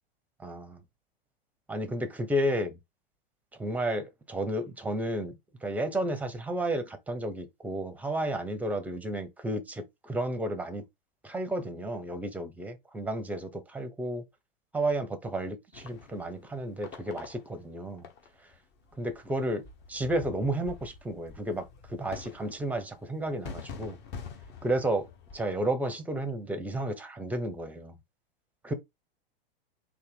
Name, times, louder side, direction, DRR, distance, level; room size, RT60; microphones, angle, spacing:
voice 1, 0.4-0.8 1.7-2.8 3.6-5.3 5.6-10.8 11.2-14.2 14.7-18.0 19.0-19.6 19.9-24.0 24.6-25.0 25.3-27.9 28.6-28.7, right 1 dB, 5° right, 0.8 m, -32 dB
sound 1, 15.7-25.4, left 5 dB, 35° left, 1.3 m, -46 dB
4.1 x 2.8 x 3.8 m
figure-of-eight pair, 100°, 29 cm